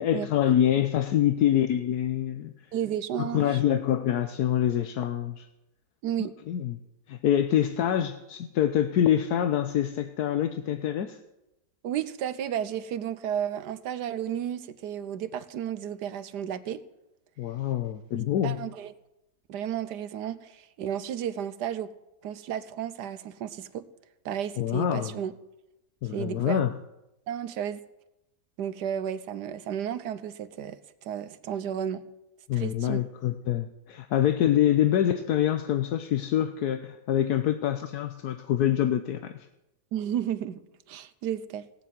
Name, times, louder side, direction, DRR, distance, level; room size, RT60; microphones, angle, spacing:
voice 1, 0.0-2.5 3.2-5.5 6.2-6.8 7.1-11.2 17.4-18.6 24.6-25.2 26.0-26.7 32.5-39.5, left 10 dB, 75° left, 1.3 m, -25 dB
voice 2, 2.7-3.6 6.0-6.3 11.8-16.8 18.4-18.9 19.5-21.9 22.2-23.8 24.2-25.3 26.1-26.6 27.3-27.8 28.6-32.0 32.5-33.0 39.9-40.6 40.9-41.6, right 9 dB, 85° right, 1.4 m, -32 dB
17.5 x 7.2 x 9.3 m
omnidirectional pair, 1.7 m